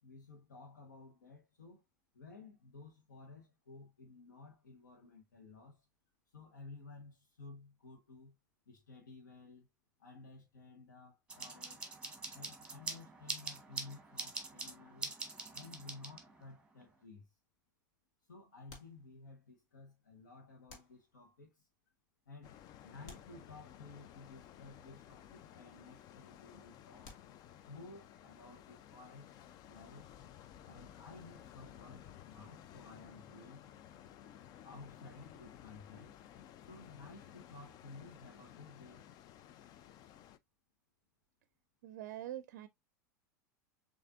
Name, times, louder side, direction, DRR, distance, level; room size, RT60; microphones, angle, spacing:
voice 1, 0.0-1.8 2.1-5.9 6.3-8.4 8.7-9.7 10.0-11.8 12.3-15.2 15.5-17.3 18.3-21.7 22.3-27.2 27.7-29.4 29.7-30.1 30.6-33.7 34.6-36.2 36.6-39.0, left 3 dB, 80° left, 1.0 m, -55 dB
sound 1, 11.3-16.5, right 3 dB, 10° right, 1.2 m, -44 dB
sound 2, 16.9-17.4 18.7-19.6 20.7-21.5 23.0-24.1 27.0-27.9, left 3 dB, 60° left, 1.6 m, -59 dB
sound 3, 22.4-40.4, left 10 dB, 40° left, 0.4 m, -56 dB
voice 2, 41.8-42.7, right 13 dB, 65° right, 0.4 m, -44 dB
6.5 x 2.6 x 2.4 m
figure-of-eight pair, 85°, 10 cm